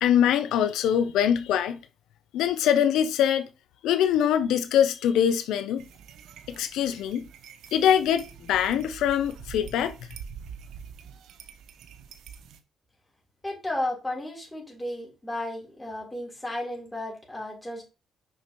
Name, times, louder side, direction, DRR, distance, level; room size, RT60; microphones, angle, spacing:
voice 1, 0.0-1.8 2.3-3.5 3.8-5.8 6.5-7.2 7.7-9.9, left 9 dB, 85° left, 0.5 m, -23 dB
sound 1, 5.8-12.6, right 7 dB, 80° right, 0.7 m, -45 dB
voice 2, 13.4-17.8, left 1 dB, 10° left, 3.5 m, -33 dB
6.1 x 5.8 x 3.0 m
cardioid pair, 90°, 0 cm